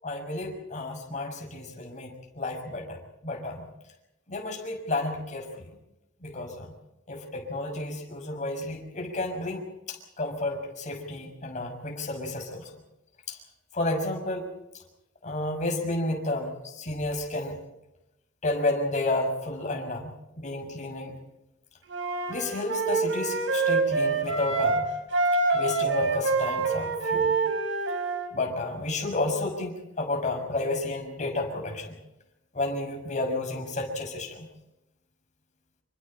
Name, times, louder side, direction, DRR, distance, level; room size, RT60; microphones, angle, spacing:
voice 1, 0.0-3.7 4.3-5.5 6.2-6.7 7.1-12.7 13.3-13.4 13.7-14.5 15.2-17.6 18.4-21.2 22.3-24.9 25.5-27.4 28.3-32.0 32.5-34.5, left 2 dB, 40° left, 2 dB, 6.1 m, -31 dB
Wind instrument woodwind instrument, 21.9-24.8 25.1-28.3, right 3 dB, 80° right, 4.4 m, -26 dB
27.5 x 25.0 x 4.4 m, 0.92 s
head